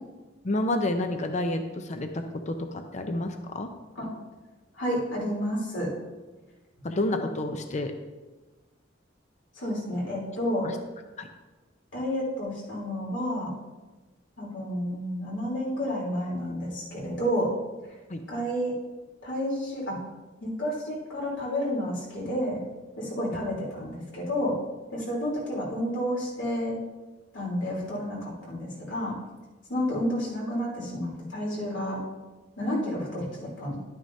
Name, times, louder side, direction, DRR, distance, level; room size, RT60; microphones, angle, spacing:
voice 1, 0.4-3.7 6.8-7.9 10.6-10.7 11.2-11.3 18.1-18.2, left 1 dB, 40° left, 6 dB, 0.6 m, -29 dB
voice 2, 4.7-5.9 9.5-10.7 11.9-13.5 14.4-17.5 18.3-18.7 19.2-20.0 20.4-22.6 23.0-24.5 24.9-26.8 27.3-29.1 29.7-32.0 32.6-33.8, equal, 75° left, -4 dB, 3.4 m, -30 dB
11.5 x 9.5 x 2.7 m, 1.2 s
head